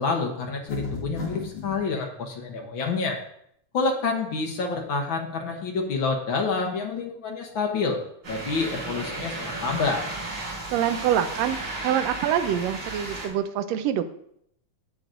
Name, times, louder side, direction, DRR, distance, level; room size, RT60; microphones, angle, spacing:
voice 1, 0.0-3.2 3.7-8.0 8.3-10.0, left 4 dB, 65° left, 2 dB, 1.2 m, -28 dB
sound 1, 0.7-1.8, left 4 dB, 50° left, 2.0 m, -33 dB
sound 2, 8.2-13.3, right 2 dB, 45° right, 4.4 m, -34 dB
voice 2, 10.7-11.6 11.8-14.1, right 10 dB, 75° right, 9 dB, 1.6 m, -25 dB
11.5 x 7.7 x 2.6 m, 0.71 s
omnidirectional pair, 3.4 m